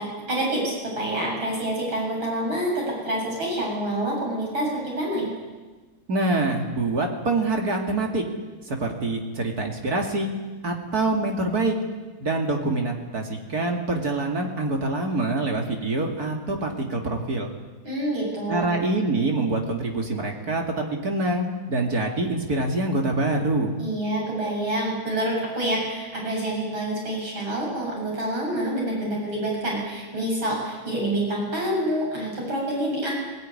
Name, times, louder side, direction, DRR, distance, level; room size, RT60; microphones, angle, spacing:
voice 1, 0.0-5.3 17.8-18.7 23.8-33.2, right 1 dB, 90° right, -2 dB, 8.3 m, -27 dB
voice 2, 6.1-8.2 8.7-10.3 10.6-11.7 12.2-17.5 18.5-23.7, right 2 dB, 50° right, 2 dB, 3.0 m, -25 dB
21.5 x 18.0 x 9.9 m, 1.3 s
omnidirectional pair, 2.1 m